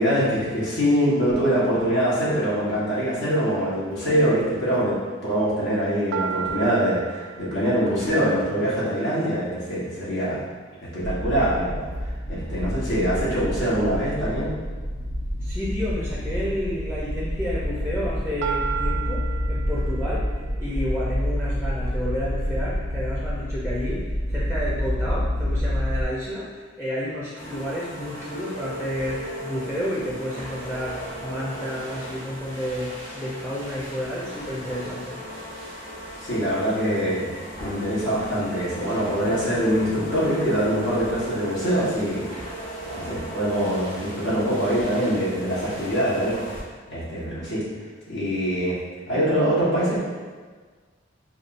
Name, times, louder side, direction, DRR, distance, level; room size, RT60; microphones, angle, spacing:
voice 1, 0.0-5.0 5.2-10.4 10.9-11.7 12.3-14.5 36.2-37.3 37.6-42.3 42.9-46.4 46.9-47.6 48.1-48.8 49.1-50.0, equal, 70° left, -9 dB, 1.4 m, -23 dB
sound 1, 6.1-10.1 18.4-22.5, right 7 dB, 60° right, 0.3 m, -35 dB
sound 2, 11.0-26.0, equal, 85° left, 0.7 m, -28 dB
voice 2, 15.4-20.3 20.6-35.2, equal, 5° left, -8 dB, 0.7 m, -31 dB
sound 3, 27.4-46.6, equal, 40° left, 1.3 m, -37 dB
6.6 x 2.3 x 2.6 m, 1.5 s
head